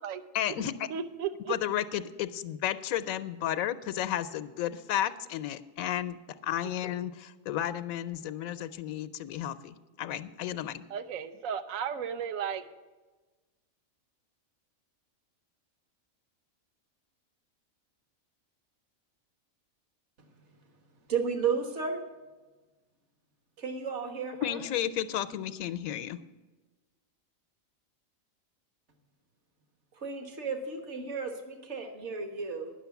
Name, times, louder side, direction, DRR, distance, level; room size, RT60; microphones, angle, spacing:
voice 1, 0.3-0.7 1.5-6.2 6.4-10.8 24.4-26.2, left 11 dB, 85° left, 12 dB, 1.0 m, -33 dB
voice 2, 0.9-1.6 10.9-12.6, right 8 dB, 75° right, 11 dB, 1.1 m, -34 dB
voice 3, 21.1-22.0 23.6-24.6 29.9-32.7, right 5 dB, 55° right, 5 dB, 1.6 m, -33 dB
10.0 x 6.3 x 8.1 m, 1.2 s
omnidirectional pair, 1.4 m